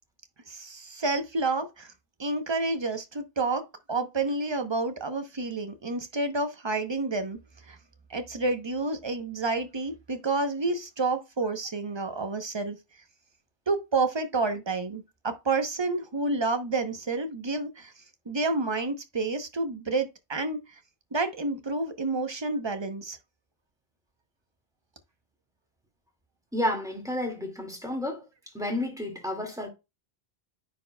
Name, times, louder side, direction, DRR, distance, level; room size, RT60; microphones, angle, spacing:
voice 1, 0.5-1.9 2.2-7.4 7.7-7.8 8.1-12.8 13.7-17.9 18.3-20.8 21.1-23.2, right 3 dB, 30° right, 0.9 m, -29 dB
voice 2, 26.5-28.3 28.5-29.7, left 1 dB, 5° right, 2.1 m, -31 dB
9.6 x 4.6 x 2.2 m
omnidirectional pair, 1.0 m